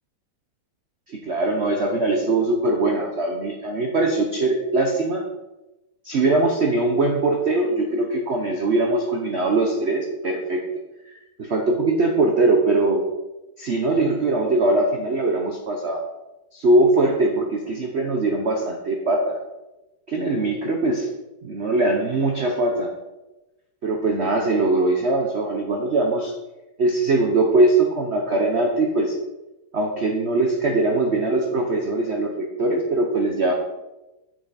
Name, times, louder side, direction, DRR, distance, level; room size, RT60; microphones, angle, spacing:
voice 1, 1.1-5.2 6.0-10.6 11.4-13.0 13.6-16.0 16.5-19.4 20.1-21.1 21.4-22.9 23.8-26.3 26.8-29.1 29.7-33.5, right 2 dB, 55° right, 1 dB, 0.7 m, -21 dB
7.6 x 6.3 x 4.0 m, 1.0 s
omnidirectional pair, 2.2 m